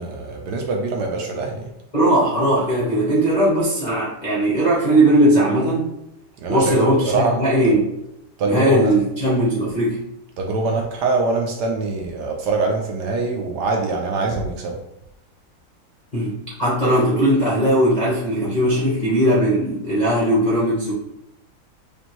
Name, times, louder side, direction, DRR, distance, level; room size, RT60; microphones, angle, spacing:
voice 1, 0.0-1.6 6.4-6.8 7.0-7.4 8.4-8.9 10.4-14.8, right 3 dB, 70° right, 1 dB, 1.1 m, -23 dB
voice 2, 1.9-5.9 6.5-7.9 8.4-10.0 16.1-20.9, right 1 dB, 40° left, -7 dB, 0.6 m, -18 dB
5.1 x 2.5 x 3.0 m, 0.85 s
omnidirectional pair, 2.1 m